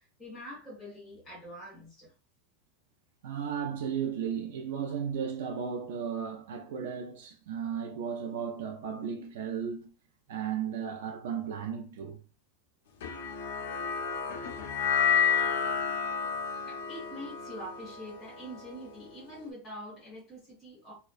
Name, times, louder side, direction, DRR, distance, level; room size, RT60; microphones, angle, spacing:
voice 1, 0.0-2.1 16.7-20.9, equal, 20° left, 1.5 m, -45 dB
voice 2, 3.2-9.9 10.3-12.2, right 7 dB, 85° right, 0.3 m, -35 dB
sound 1, 13.0-19.4, left 6 dB, 85° left, 0.4 m, -31 dB
2.4 x 2.1 x 2.4 m
supercardioid pair, 175°, 0 cm